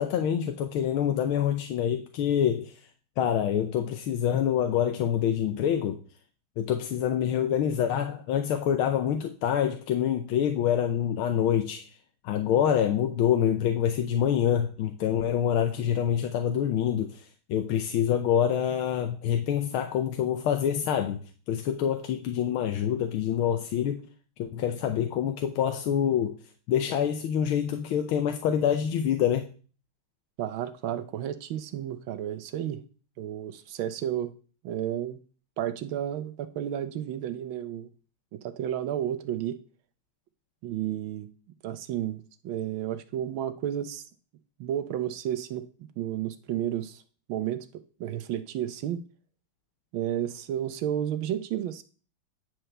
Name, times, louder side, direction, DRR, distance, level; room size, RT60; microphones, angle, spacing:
voice 1, 0.0-2.7 3.2-6.0 6.6-11.9 12.2-17.2 17.5-21.2 21.5-24.0 24.4-26.4 26.7-29.5, left 9 dB, 75° left, 6 dB, 1.6 m, -26 dB
voice 2, 30.4-32.8 33.2-34.3 34.6-35.2 35.6-37.9 38.3-39.6 40.6-41.3 41.6-44.0 44.6-47.0 47.3-49.0 49.9-51.8, right 11 dB, 70° right, 12 dB, 1.4 m, -32 dB
10.0 x 4.5 x 6.6 m, 0.38 s
omnidirectional pair, 2.4 m